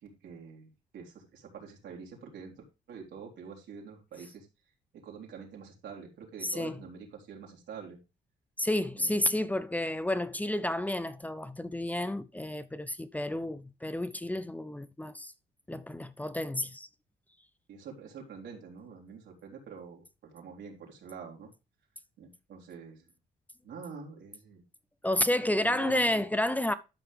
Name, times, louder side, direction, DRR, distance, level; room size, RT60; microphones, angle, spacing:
voice 1, 0.0-2.5 2.9-4.5 4.9-8.0 9.0-9.4 17.7-21.5 22.2-23.0 23.6-24.6 25.6-26.1, right 6 dB, 80° right, 3.5 m, -46 dB
voice 2, 6.4-6.8 8.6-15.3 15.7-16.9 25.0-26.7, left 1 dB, 10° left, 0.6 m, -31 dB
12.5 x 5.7 x 3.5 m
cardioid pair, 100°, 18 cm